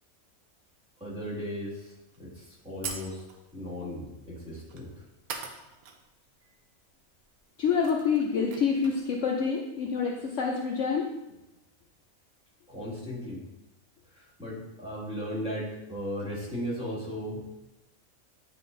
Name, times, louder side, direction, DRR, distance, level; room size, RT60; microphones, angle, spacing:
voice 1, 1.0-3.2 3.5-5.0 12.7-13.5 14.1-17.7, equal, 5° right, -9 dB, 2.0 m, -36 dB
sound 1, 2.1-2.2 2.8-3.5 4.7-4.9 5.3-6.0 6.3-6.4 7.3-7.4 7.6-9.1, right 5 dB, 75° right, 1.2 m, -41 dB
voice 2, 7.6-10.1 10.4-11.0, left 6 dB, 65° left, 0 dB, 0.9 m, -27 dB
9.3 x 4.1 x 2.6 m, 0.92 s
omnidirectional pair, 1.6 m